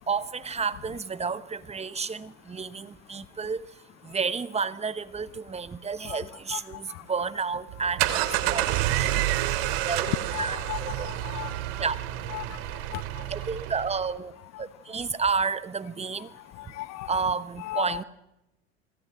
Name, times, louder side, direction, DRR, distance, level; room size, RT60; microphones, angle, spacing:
voice 1, 0.1-3.7 4.0-8.2 8.5-8.7 9.0-9.2 9.9-10.1 10.4-11.1 11.8-12.0 13.3-14.3 14.6-16.3 17.1-18.0, right 5 dB, 20° right, 15 dB, 1.2 m, -31 dB
sound 1, 7.7-14.1, right 14 dB, 65° right, 2.8 m, -29 dB
voice 2, 10.3-11.5 12.3-12.6 12.9-13.0 16.6-17.2 17.6-18.0, left 16 dB, 55° left, 18 dB, 1.1 m, -36 dB
25.0 x 21.5 x 7.7 m, 0.89 s
hypercardioid pair, 90°, 32 cm